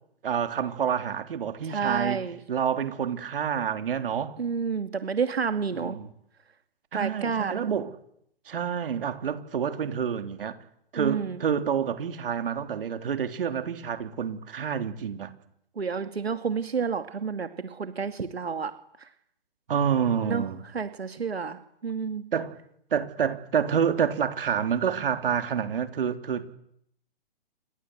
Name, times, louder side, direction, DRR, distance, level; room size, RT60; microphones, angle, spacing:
voice 1, 0.2-2.2 2.5-4.4 5.7-6.1 6.9-7.9 8.5-10.6 10.9-15.3 19.7-20.6 22.3-22.6 22.9-26.4, right 7 dB, 65° right, 3.5 m, -28 dB
voice 2, 1.6-2.4 4.4-6.0 6.9-7.5 10.9-11.4 15.8-18.7 19.0-19.1 20.2-20.4 20.7-22.2, right 6 dB, 90° right, 2.5 m, -30 dB
29.5 x 24.5 x 8.1 m
hypercardioid pair, 145°, 30 cm